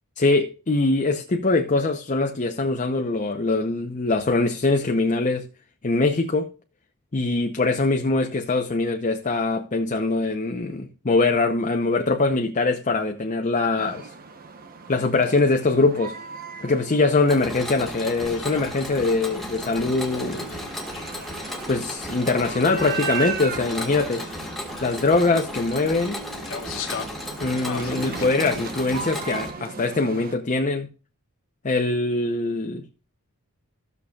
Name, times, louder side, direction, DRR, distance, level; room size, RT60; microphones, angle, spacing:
voice 1, 0.2-5.4 5.8-6.5 7.1-14.1 14.9-16.2 16.6-20.5 21.7-24.2 24.8-26.2 27.4-30.9 31.6-32.8, left 3 dB, 35° left, 0.7 m, -23 dB
sound 1, 13.8-30.4, right 5 dB, 40° right, 1.0 m, -37 dB
Mechanisms, 17.3-29.5, left 1 dB, ahead, 1.7 m, -35 dB
sound 2, 18.3-28.3, left 6 dB, 65° left, 1.4 m, -41 dB
15.5 x 6.7 x 2.4 m
head